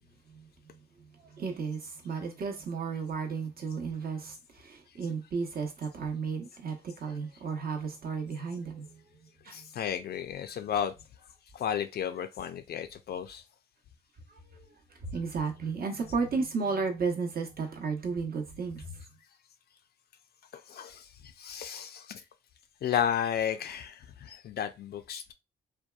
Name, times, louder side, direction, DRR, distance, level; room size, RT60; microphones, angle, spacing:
voice 1, 0.3-9.0 9.4-9.7 14.3-19.0, right 5 dB, 50° right, 0.8 m, -34 dB
voice 2, 9.5-10.9 11.5-13.4 20.5-22.2 22.8-25.3, left 9 dB, 55° left, 0.4 m, -33 dB
2.7 x 2.2 x 2.3 m
supercardioid pair, 55°, 20 cm